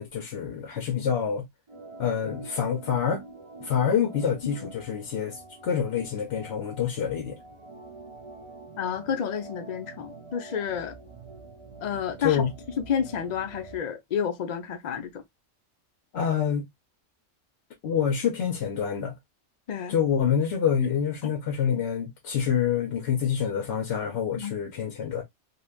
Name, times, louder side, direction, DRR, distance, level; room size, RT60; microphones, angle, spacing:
voice 1, 0.0-1.5 2.0-3.2 3.6-7.4 12.2-12.5 16.1-16.7 17.8-19.1 19.9-25.2, left 8 dB, 65° left, 0.9 m, -27 dB
Organ, 1.7-13.8, right 3 dB, 35° right, 0.6 m, -46 dB
voice 2, 8.8-11.0 11.8-12.4 12.8-15.2 19.7-20.0 21.2-21.3 24.3-24.5, left 8 dB, 45° left, 0.6 m, -30 dB
3.2 x 2.5 x 2.3 m
omnidirectional pair, 1.2 m